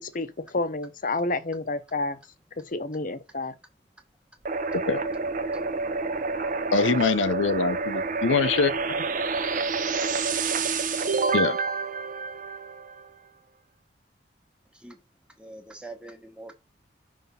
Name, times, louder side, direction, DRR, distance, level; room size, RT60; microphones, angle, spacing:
voice 1, 0.0-2.2 2.6-3.5, left 2 dB, 45° left, 0.7 m, -30 dB
sound 1, 4.4-13.1, right 4 dB, 45° right, 0.7 m, -28 dB
voice 2, 6.7-8.7 11.3-11.6, left 4 dB, 80° left, 0.6 m, -23 dB
voice 3, 15.4-16.5, right 2 dB, 5° right, 1.1 m, -43 dB
5.8 x 3.4 x 5.3 m
head